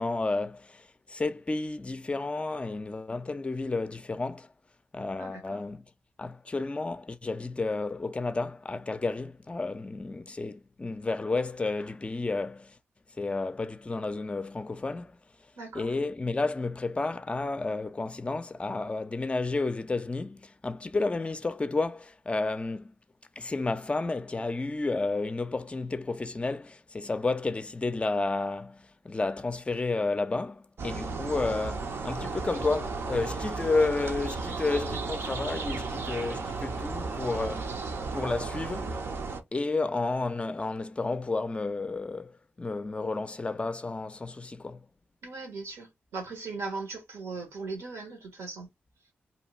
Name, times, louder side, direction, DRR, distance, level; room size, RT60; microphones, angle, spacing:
voice 1, 0.0-4.5 4.9-5.9 6.2-12.8 13.2-15.2 15.7-22.9 23.4-39.0 39.5-44.8, left 3 dB, 25° left, 0.4 m, -31 dB
voice 2, 5.2-5.6 15.6-15.9 31.0-31.2 45.2-48.7, right 3 dB, 85° right, 1.1 m, -39 dB
sound 1, 30.8-39.4, right 4 dB, 65° right, 0.6 m, -34 dB
2.7 x 2.3 x 3.0 m
supercardioid pair, 50°, 4 cm